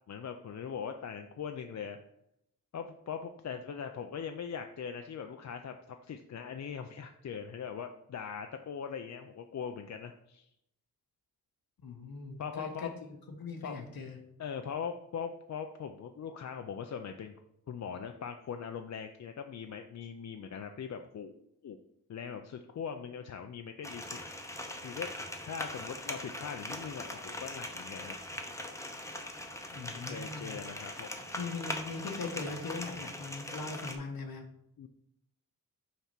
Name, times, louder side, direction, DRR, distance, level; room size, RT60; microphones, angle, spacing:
voice 1, 0.1-2.0 2.7-10.5 12.4-12.9 13.6-13.7 14.4-17.3 17.7-21.8 22.1-24.2 24.8-25.1 25.4-28.2 29.9-31.3 34.8-34.9, left 7 dB, 50° left, 6 dB, 0.4 m, -41 dB
voice 2, 11.8-12.9 13.3-14.2 29.7-30.6 31.3-34.5, left 4 dB, 80° left, 3 dB, 1.1 m, -40 dB
sound 1, 23.8-34.0, left 1 dB, 10° left, 0.7 m, -41 dB
5.7 x 4.3 x 5.9 m, 0.78 s
wide cardioid pair, 165°, 35 cm